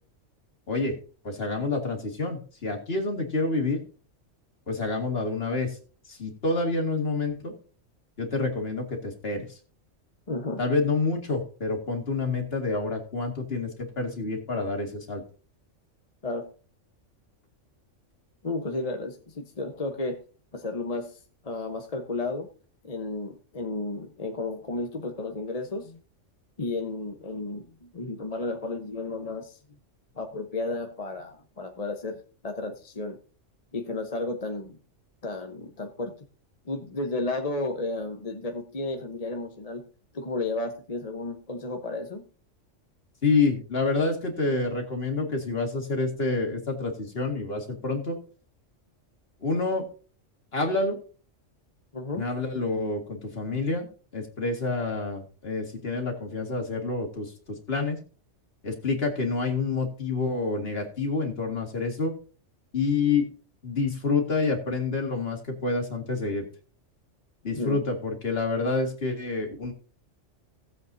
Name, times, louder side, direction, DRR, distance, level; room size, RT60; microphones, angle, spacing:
voice 1, 1.2-3.8 4.7-5.8 6.1-7.5 8.2-9.5 10.6-15.2 43.2-48.2 49.4-49.8 50.5-51.0 52.2-53.9 54.1-58.0 58.6-62.1 62.7-63.3 63.6-66.5 67.4-69.7, left 3 dB, 50° left, 3 dB, 2.3 m, -28 dB
voice 2, 10.3-10.6 16.2-16.5 18.4-20.2 20.5-22.5 22.8-26.0 26.6-29.6 30.1-33.2 33.7-34.8 35.2-36.1 36.6-39.8 40.1-42.2 51.9-52.2 67.5-67.8, left 2 dB, 30° left, 4 dB, 1.1 m, -33 dB
17.5 x 7.8 x 2.7 m, 0.38 s
omnidirectional pair, 1.3 m